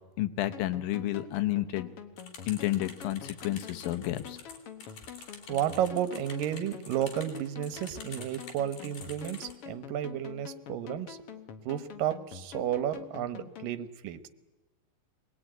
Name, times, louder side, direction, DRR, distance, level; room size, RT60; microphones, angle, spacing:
voice 1, 0.2-1.9 2.5-4.4, left 14 dB, 85° left, 9 dB, 2.7 m, -31 dB
sound 1, 0.5-13.8, left 9 dB, 55° left, 1.7 m, -46 dB
sound 2, 2.2-9.5, left 5 dB, 70° left, 4.6 m, -48 dB
voice 2, 5.5-11.2 11.7-14.3, right 10 dB, 75° right, 12 dB, 2.7 m, -32 dB
22.5 x 20.5 x 9.1 m, 1.1 s
omnidirectional pair, 4.0 m